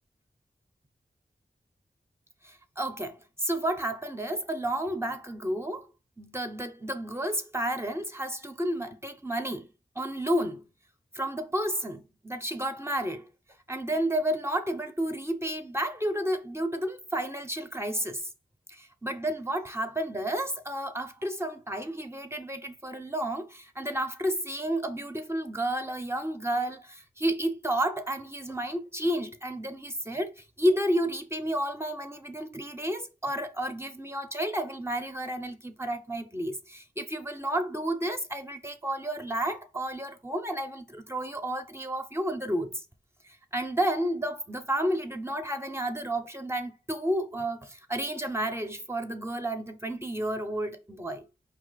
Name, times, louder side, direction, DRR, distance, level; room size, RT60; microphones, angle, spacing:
voice 1, 2.4-5.9 6.2-9.7 10.0-10.6 11.1-13.3 13.7-18.3 18.7-42.8 43.2-51.3, right 1 dB, 15° right, 0.7 m, -31 dB
4.7 x 2.9 x 4.0 m
wide cardioid pair, 65°, 18 cm